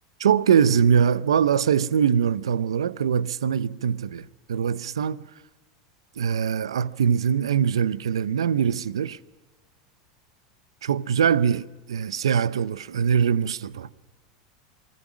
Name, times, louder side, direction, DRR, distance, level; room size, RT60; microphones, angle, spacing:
voice 1, 0.2-5.2 6.2-9.2 10.8-11.6 11.9-13.9, right 7 dB, 90° right, 0.6 m, -22 dB
27.5 x 20.0 x 6.2 m
hypercardioid pair, 95°, 3 cm